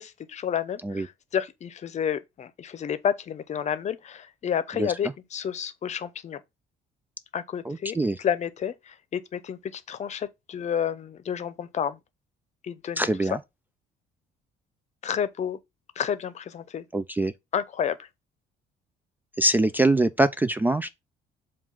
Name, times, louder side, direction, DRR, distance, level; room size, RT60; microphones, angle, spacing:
voice 1, 0.0-6.4 7.3-12.0 12.6-13.1 15.0-15.6 16.0-16.8 17.5-18.1, left 8 dB, 45° left, 0.8 m, -30 dB
voice 2, 7.7-8.2 13.0-13.4 16.9-17.3 19.4-20.9, right 2 dB, 10° right, 0.3 m, -23 dB
7.3 x 2.5 x 5.4 m
cardioid pair, 110°, 17 cm